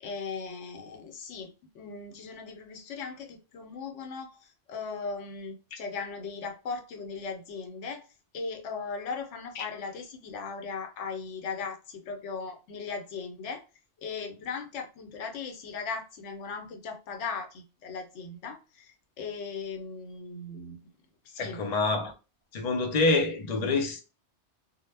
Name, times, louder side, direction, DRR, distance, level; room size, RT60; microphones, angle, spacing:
voice 1, 0.0-8.1 8.3-13.6 14.0-20.8 21.2-21.6, left 5 dB, 85° left, 0.9 m, -38 dB
voice 2, 21.4-22.1 22.5-24.0, left 3 dB, 50° left, 0.6 m, -26 dB
2.1 x 2.0 x 3.2 m
omnidirectional pair, 1.2 m